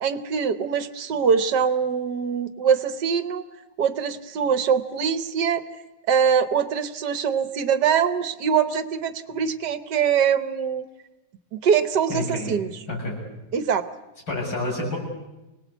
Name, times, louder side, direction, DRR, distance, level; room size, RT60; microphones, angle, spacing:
voice 1, 0.0-3.4 3.8-5.7 6.1-10.8 11.5-12.7 13.5-13.8, right 7 dB, 65° right, 12 dB, 1.6 m, -23 dB
voice 2, 12.1-12.5 12.9-13.2 14.3-15.0, left 2 dB, 85° left, -2 dB, 7.9 m, -28 dB
25.5 x 19.5 x 8.2 m, 1.0 s
omnidirectional pair, 2.0 m